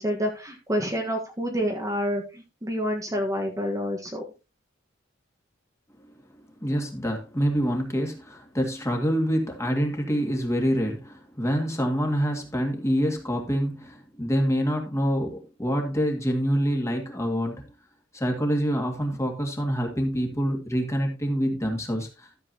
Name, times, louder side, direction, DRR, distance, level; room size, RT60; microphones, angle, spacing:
voice 1, 0.0-4.2, equal, 15° right, 1 dB, 1.4 m, -28 dB
voice 2, 6.6-17.6 18.1-22.4, equal, 15° left, 2 dB, 2.2 m, -26 dB
13.5 x 7.4 x 2.9 m, 0.29 s
head